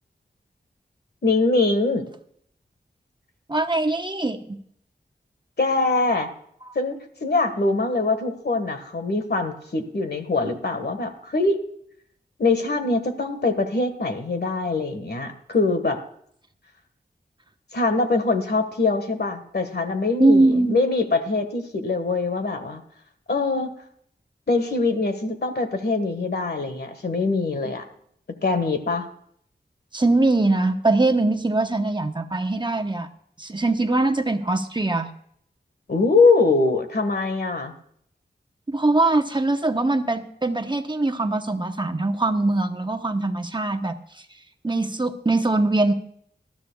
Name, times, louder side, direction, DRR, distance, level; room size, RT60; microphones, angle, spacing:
voice 1, 1.2-2.0 5.6-6.3 6.7-11.6 12.4-16.0 17.7-22.8 23.3-23.7 24.5-27.8 28.4-29.1 35.9-37.7, left 3 dB, 65° left, 7 dB, 1.5 m, -23 dB
voice 2, 3.5-4.6 20.2-20.8 29.9-33.1 33.4-35.1 38.7-44.0 44.6-45.9, right 2 dB, 25° right, 6 dB, 1.0 m, -22 dB
19.5 x 13.0 x 2.3 m, 0.67 s
wide cardioid pair, 90°, 18 cm